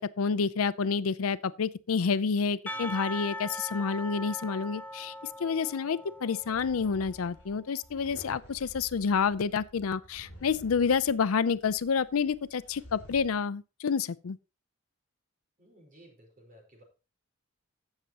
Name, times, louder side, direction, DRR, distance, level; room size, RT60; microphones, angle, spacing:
voice 1, 0.0-5.1 5.4-14.4, left 5 dB, 85° left, 0.5 m, -29 dB
Percussion / Church bell, 2.7-7.2, equal, 10° left, 0.6 m, -40 dB
sound 1, 6.4-13.4, equal, 60° left, 6.5 m, -52 dB
voice 2, 15.6-16.8, right 1 dB, 40° right, 4.4 m, -56 dB
16.0 x 6.7 x 2.9 m
head